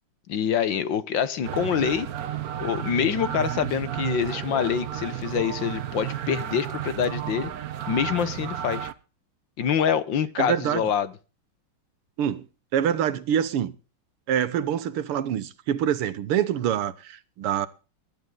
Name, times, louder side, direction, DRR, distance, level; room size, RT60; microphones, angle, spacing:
voice 1, 0.3-2.1 2.6-7.5 7.9-8.9 9.6-11.1, left 8 dB, 65° left, 1.7 m, -25 dB
sound 1, 1.4-8.9, right 11 dB, 55° right, 1.1 m, -32 dB
voice 2, 10.4-10.8 12.2-12.4 12.7-13.7 14.3-17.7, right 9 dB, 85° right, 1.9 m, -25 dB
21.0 x 11.0 x 3.9 m
omnidirectional pair, 2.4 m